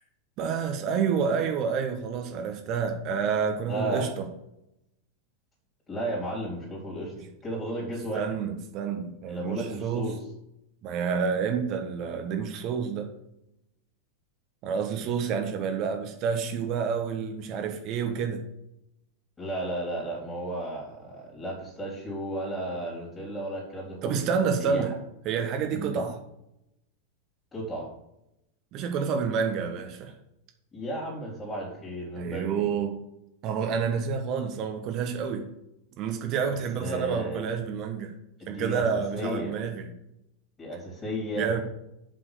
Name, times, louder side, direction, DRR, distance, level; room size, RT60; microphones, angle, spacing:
voice 1, 0.4-4.3 8.1-10.1 10.8-13.1 14.6-18.4 24.0-24.9 25.2-26.2 28.7-30.1 32.2-32.9 33.4-35.5 36.0-38.1 38.5-39.9 41.4-41.6, right 6 dB, 40° right, 4 dB, 1.3 m, -29 dB
voice 2, 3.7-4.1 5.9-7.1 7.4-8.3 9.3-10.1 19.4-24.3 24.6-25.0 25.7-26.0 27.5-27.9 30.7-32.7 36.8-37.5 38.4-39.5 40.6-41.5, right 1 dB, 15° left, -5 dB, 3.7 m, -33 dB
7.9 x 6.0 x 6.8 m, 0.86 s
figure-of-eight pair, 90°, 0 cm